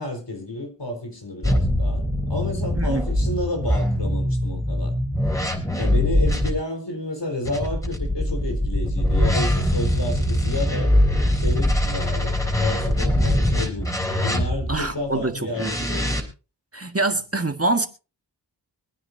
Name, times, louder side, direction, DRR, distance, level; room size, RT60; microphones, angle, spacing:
voice 1, 0.0-4.9 5.7-10.9 11.3-13.9 14.2-16.2, left 2 dB, 75° left, 4 dB, 4.4 m, -31 dB
sound 1, 1.4-6.5 7.4-14.8 15.5-16.2, left 1 dB, 10° left, 3.7 m, -22 dB
voice 2, 2.8-3.1 14.7-15.9 16.7-17.9, right 2 dB, 35° right, 6 dB, 1.8 m, -25 dB
25.0 x 9.5 x 2.7 m, 0.33 s
wide cardioid pair, 50°, 42 cm